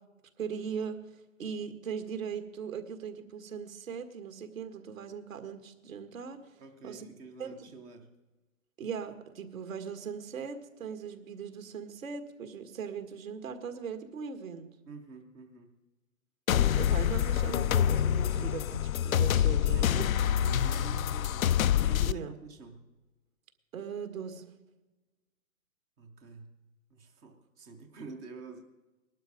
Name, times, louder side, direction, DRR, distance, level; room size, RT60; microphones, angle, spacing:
voice 1, 0.4-1.0 1.4-6.5 6.8-7.0 7.4-7.6 8.8-14.7 16.5-20.1 22.1-22.3 23.7-24.5, right 6 dB, 80° right, 8 dB, 1.9 m, -39 dB
voice 2, 6.6-8.1 14.9-15.7 19.5-21.6 21.9-22.9 26.0-26.6 26.9-28.6, right 4 dB, 10° right, 3 dB, 0.4 m, -48 dB
sound 1, 16.5-22.1, left 10 dB, 90° left, 0.5 m, -26 dB
19.0 x 12.0 x 5.1 m, 1.1 s
hypercardioid pair, 130°, 40 cm